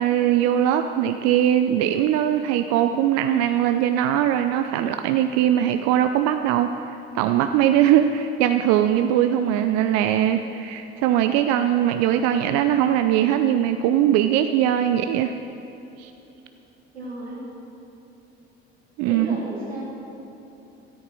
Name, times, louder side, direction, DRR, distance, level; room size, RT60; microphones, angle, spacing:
voice 1, 0.0-6.7 7.1-15.3 16.0-16.1 19.0-19.4, right 11 dB, 55° right, 8 dB, 0.6 m, -21 dB
voice 2, 16.9-17.4 19.0-19.8, right 2 dB, 90° right, -6 dB, 3.1 m, -33 dB
13.0 x 9.0 x 6.2 m, 3.0 s
figure-of-eight pair, 60°, 31 cm